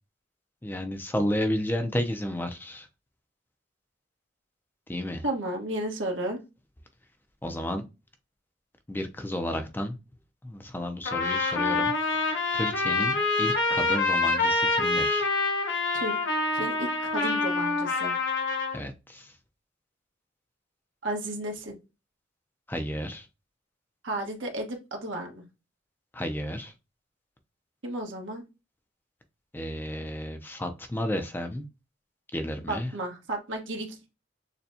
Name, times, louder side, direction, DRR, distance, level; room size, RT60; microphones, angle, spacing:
voice 1, 0.6-2.9 4.9-5.2 7.4-7.8 8.9-10.0 10.4-11.9 12.2-15.3 18.7-19.3 22.7-23.3 26.1-26.7 29.5-31.6 32.3-32.9, left 1 dB, 10° left, 6 dB, 0.5 m, -32 dB
voice 2, 5.2-6.4 15.9-16.2 16.5-18.1 21.0-21.8 24.0-25.4 27.8-28.4 32.7-34.0, right 1 dB, 85° right, 1 dB, 1.4 m, -33 dB
Trumpet, 11.1-18.8, left 3 dB, 85° left, 1.1 m, -26 dB
6.7 x 2.3 x 2.7 m, 0.27 s
head